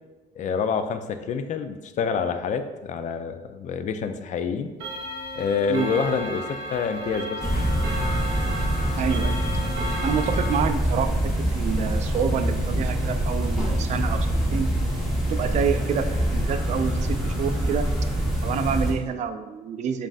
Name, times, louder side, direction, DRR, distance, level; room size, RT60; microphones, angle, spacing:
voice 1, 0.4-4.7 5.3-6.4 6.7-7.4, left 6 dB, 45° left, 8 dB, 0.4 m, -27 dB
Clock, 4.8-10.6, equal, 80° right, 0.7 m, -33 dB
sound 1, 7.4-18.9, right 1 dB, ahead, 1.2 m, -25 dB
voice 2, 9.0-9.4 10.0-14.7 15.3-16.1 16.3-17.8 18.4-20.1, right 7 dB, 45° right, 9 dB, 0.4 m, -27 dB
7.3 x 2.5 x 2.4 m, 1.2 s
cardioid pair, 110°, 17 cm